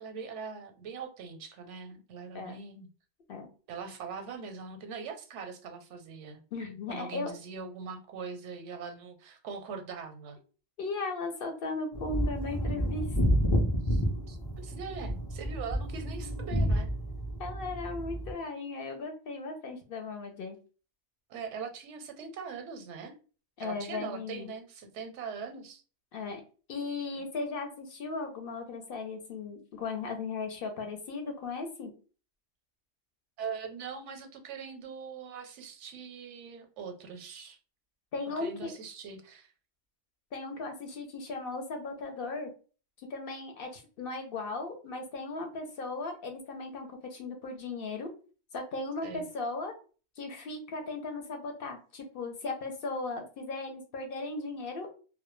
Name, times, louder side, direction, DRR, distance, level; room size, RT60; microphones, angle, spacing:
voice 1, 0.0-2.9 3.7-6.4 6.9-10.4 13.8-16.9 21.3-23.1 23.6-25.8 27.2-27.3 33.4-37.6 38.4-39.5 49.0-49.3, right 5 dB, 85° right, 0.9 m, -42 dB
voice 2, 6.5-7.3 10.8-13.1 17.4-20.6 23.6-24.5 26.1-26.4 26.7-31.9 38.1-38.7 40.3-42.5 43.1-48.1 48.5-49.7 50.2-54.9, left 3 dB, 60° left, 0.7 m, -37 dB
sound 1, 11.9-18.3, equal, 40° left, 0.3 m, -30 dB
2.1 x 2.0 x 3.0 m
omnidirectional pair, 1.2 m